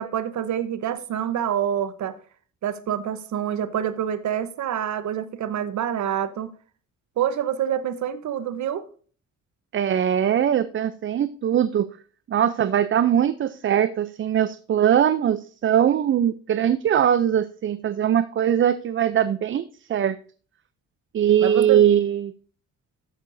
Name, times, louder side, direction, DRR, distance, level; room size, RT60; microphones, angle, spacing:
voice 1, 0.0-2.2 2.6-6.5 7.2-8.9 21.4-21.8, right 9 dB, 70° right, 1.1 m, -26 dB
voice 2, 9.7-11.9 12.3-20.2 21.1-22.3, right 9 dB, 40° right, 0.5 m, -21 dB
14.0 x 6.5 x 2.6 m
cardioid pair, 90°, 30 cm